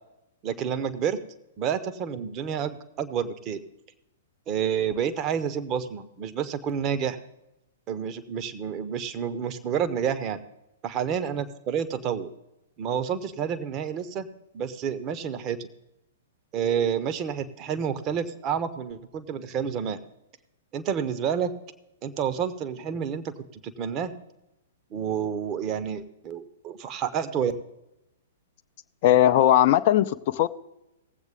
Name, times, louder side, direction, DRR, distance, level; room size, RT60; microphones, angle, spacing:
voice 1, 0.4-1.2 1.6-3.6 4.5-7.2 7.9-10.4 10.8-12.3 12.8-14.3 14.5-15.7 16.5-20.0 20.7-21.5 22.0-23.3 23.6-24.1 24.9-27.5, right 8 dB, 30° right, 10 dB, 1.0 m, -29 dB
voice 2, 29.0-30.5, left 12 dB, 40° left, 10 dB, 0.5 m, -19 dB
19.0 x 8.0 x 3.6 m, 0.89 s
figure-of-eight pair, 105°, 0 cm